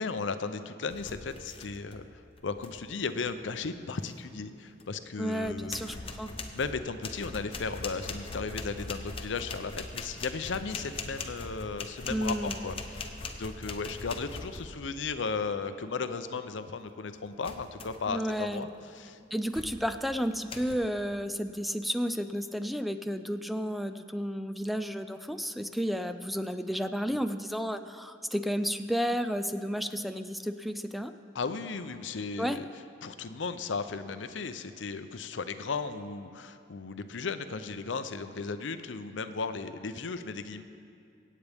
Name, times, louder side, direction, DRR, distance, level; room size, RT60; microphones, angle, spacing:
voice 1, 0.0-2.0 2.4-5.8 6.5-13.1 13.4-19.2 31.3-32.7 33.0-40.6, left 4 dB, 90° left, 10 dB, 0.6 m, -35 dB
sound 1, 0.9-2.1 2.4-2.9 4.8-4.9 5.4-15.0 17.4-18.1 18.6-18.9 19.5-20.0 20.5-20.8, left 3 dB, 30° left, 0.8 m, -41 dB
voice 2, 5.2-6.3 12.1-12.6 18.1-18.7 19.3-31.1 32.4-32.6, equal, ahead, 9 dB, 0.3 m, -32 dB
24.5 x 8.5 x 3.5 m, 2.4 s
head